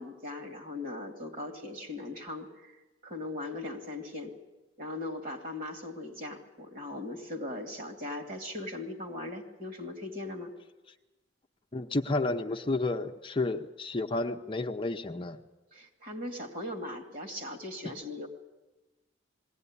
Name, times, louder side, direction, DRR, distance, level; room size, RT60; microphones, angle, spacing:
voice 1, 0.0-4.3 4.8-10.5 15.7-18.3, left 2 dB, 50° right, 5 dB, 2.6 m, -39 dB
voice 2, 11.7-15.4, left 2 dB, 30° left, 5 dB, 0.7 m, -31 dB
20.5 x 16.5 x 9.8 m, 1.1 s
head